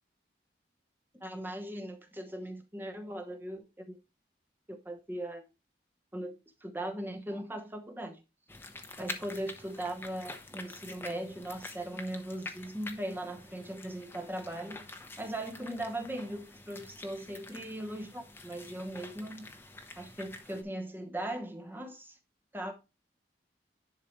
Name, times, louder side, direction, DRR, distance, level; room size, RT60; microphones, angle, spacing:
voice 1, 1.1-4.0 4.7-5.4 6.1-8.2 9.0-14.9 15.2-19.5 20.0-22.2 22.5-22.7, right 1 dB, 10° right, 1.0 m, -39 dB
sound 1, 8.5-20.6, left 2 dB, 15° left, 0.9 m, -47 dB
10.5 x 4.6 x 3.1 m
head